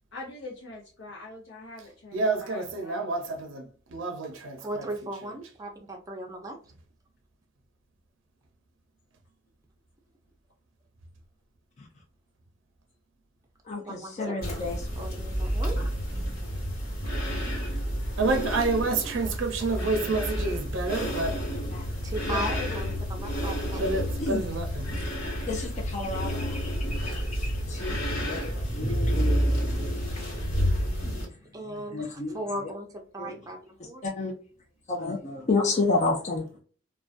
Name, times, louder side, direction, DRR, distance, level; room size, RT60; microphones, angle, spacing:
voice 1, 0.1-3.5 22.2-23.5, left 3 dB, 75° left, 0.7 m, -41 dB
voice 2, 2.1-4.9 17.0-17.7 18.2-21.4 23.8-24.9, right 3 dB, 80° right, 0.5 m, -29 dB
voice 3, 4.6-6.6 13.9-14.3 15.0-15.8 22.0-24.1 31.1-34.0, right 1 dB, 20° right, 0.5 m, -37 dB
voice 4, 13.7-14.8 21.7-21.9 24.2-24.4 25.2-29.6 31.0-31.2 31.9-32.4 33.2-33.3 34.0-34.3 34.9-36.6, left 3 dB, 35° left, 0.4 m, -31 dB
sound 1, 14.4-31.2, equal, 55° left, 1.2 m, -30 dB
2.4 x 2.2 x 2.4 m
head